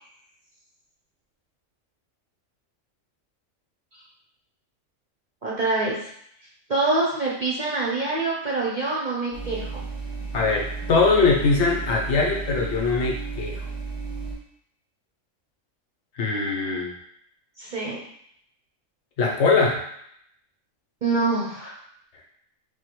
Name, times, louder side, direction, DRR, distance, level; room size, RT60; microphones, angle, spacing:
voice 1, 5.4-6.1 6.7-9.8 17.6-18.0 21.0-21.8, right 3 dB, 45° right, -4 dB, 0.6 m, -25 dB
sound 1, 9.3-14.3, right 4 dB, 20° right, 0.9 m, -33 dB
voice 2, 10.3-13.7 16.1-17.0 19.2-19.8, left 4 dB, 65° left, -2 dB, 1.0 m, -22 dB
4.9 x 2.2 x 3.0 m, 0.70 s
omnidirectional pair, 1.3 m